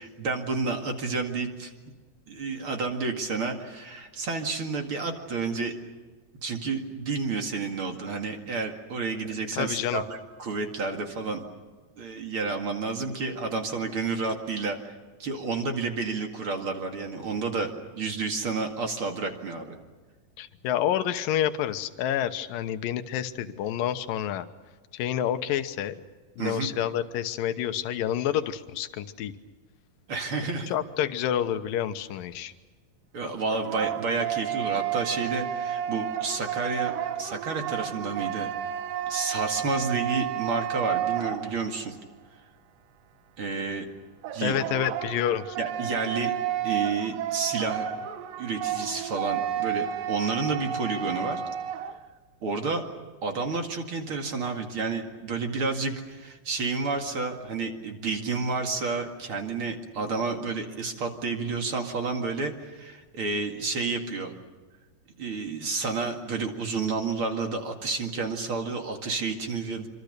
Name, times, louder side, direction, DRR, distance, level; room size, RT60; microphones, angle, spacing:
voice 1, 0.0-1.7 2.3-5.7 6.4-11.4 12.0-14.9 15.2-17.7 18.0-19.8 26.4-26.7 30.1-30.7 33.1-38.5 39.1-42.0 43.4-43.9 44.3-44.6 45.6-46.3 46.6-47.8 48.4-51.4 52.4-52.8 53.2-64.3 65.2-69.9, right 4 dB, 40° right, 4 dB, 2.6 m, -30 dB
voice 2, 9.6-10.0 20.4-24.5 24.9-26.0 26.4-29.3 30.7-32.5 44.4-45.6, left 10 dB, 85° left, 10 dB, 2.8 m, -28 dB
sound 1, 33.2-41.9 44.2-52.0, right 10 dB, 80° right, 2.7 m, -31 dB
26.5 x 25.5 x 6.7 m, 1.4 s
omnidirectional pair, 3.9 m